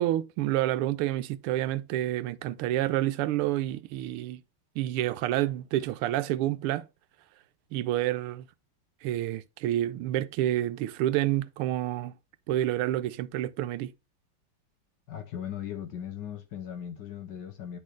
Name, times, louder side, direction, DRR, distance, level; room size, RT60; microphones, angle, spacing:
voice 1, 0.0-4.4 4.8-6.9 7.7-8.4 9.0-12.1 12.5-13.9, right 14 dB, 85° right, 1.5 m, -28 dB
voice 2, 15.1-17.8, left 9 dB, 60° left, 1.5 m, -38 dB
10.0 x 4.2 x 3.1 m
omnidirectional pair, 2.4 m